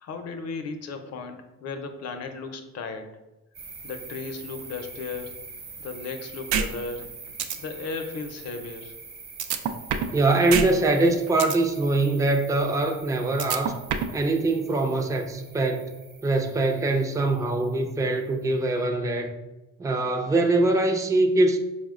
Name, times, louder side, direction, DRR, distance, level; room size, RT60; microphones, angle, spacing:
voice 1, 0.0-3.2 3.8-5.3 5.8-7.1 7.6-8.9, left 4 dB, 55° left, 7 dB, 0.6 m, -35 dB
sound 1, 3.5-18.6, right 4 dB, 35° right, 0.7 m, -45 dB
sound 2, 6.5-6.7 7.0-7.1 7.4-7.6 9.4-10.2 10.5-10.7 11.0-11.6 13.4-14.2, right 8 dB, 75° right, 0.5 m, -25 dB
voice 2, 10.1-13.7 14.1-15.9 16.2-19.3 19.8-21.6, right 2 dB, 10° right, 4 dB, 0.4 m, -23 dB
4.7 x 2.1 x 3.6 m, 1.0 s
cardioid pair, 90°, 30 cm